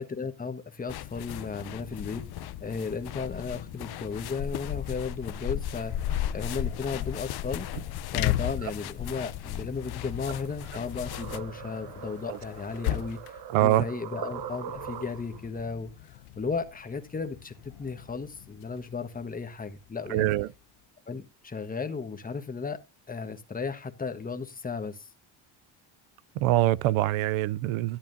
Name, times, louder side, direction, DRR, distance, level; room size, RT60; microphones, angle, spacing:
voice 1, 0.0-5.9 6.3-7.7 8.1-20.3 21.1-22.8 23.1-25.1, left 4 dB, 15° left, 1.3 m, -35 dB
sound 1, 0.9-11.4, left 11 dB, 50° left, 0.7 m, -36 dB
sound 2, 5.5-20.8, left 15 dB, 80° left, 0.8 m, -38 dB
sound 3, 10.4-15.5, right 8 dB, 55° right, 1.0 m, -42 dB
voice 2, 13.5-13.8 20.1-20.5 26.4-28.0, right 15 dB, 80° right, 0.6 m, -24 dB
11.0 x 8.6 x 2.6 m
cardioid pair, 95°, 48 cm